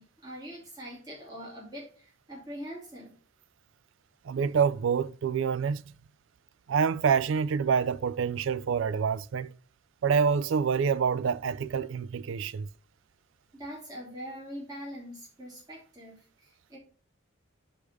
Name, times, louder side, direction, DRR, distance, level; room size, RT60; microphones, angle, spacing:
voice 1, 0.0-3.1 13.5-16.8, equal, 20° right, 2.6 m, -43 dB
voice 2, 4.2-5.8 6.7-9.5 10.0-12.7, right 6 dB, 65° right, 0.3 m, -27 dB
5.1 x 4.9 x 6.1 m
head